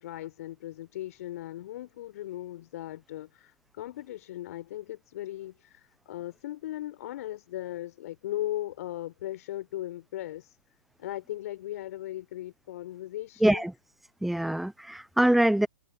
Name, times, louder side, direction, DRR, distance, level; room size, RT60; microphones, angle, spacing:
voice 1, 0.0-10.6 11.0-13.7, left 14 dB, 45° left, 4.3 m, -38 dB
voice 2, 13.4-13.7 14.2-15.7, right 1 dB, ahead, 0.6 m, -24 dB
figure-of-eight pair, 120°, 11 cm